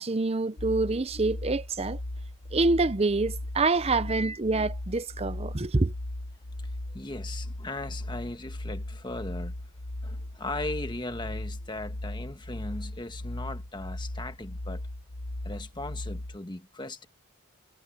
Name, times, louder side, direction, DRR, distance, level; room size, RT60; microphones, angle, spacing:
voice 1, 0.0-2.0 2.5-5.9, right 3 dB, 25° right, 0.6 m, -26 dB
sound 1, 0.6-16.4, left 1 dB, 85° left, 1.4 m, -37 dB
voice 2, 3.7-4.3 6.6-9.6 10.0-14.8 15.4-17.1, left 2 dB, 20° left, 1.4 m, -38 dB
head